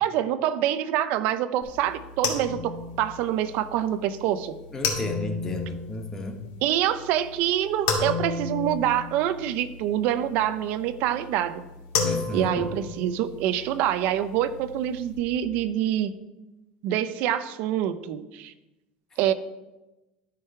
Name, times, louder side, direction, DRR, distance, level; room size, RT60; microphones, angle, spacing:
voice 1, 0.0-4.6 6.6-11.6 12.3-16.1 16.8-18.5 19.2-19.3, right 11 dB, 55° right, 12 dB, 0.5 m, -26 dB
sound 1, 1.6-15.2, left 4 dB, 90° left, 2.2 m, -34 dB
voice 2, 4.7-6.4 12.0-12.7, left 2 dB, 15° left, 4 dB, 1.0 m, -33 dB
13.0 x 4.7 x 4.7 m, 1.0 s
cardioid pair, 170°, 3 cm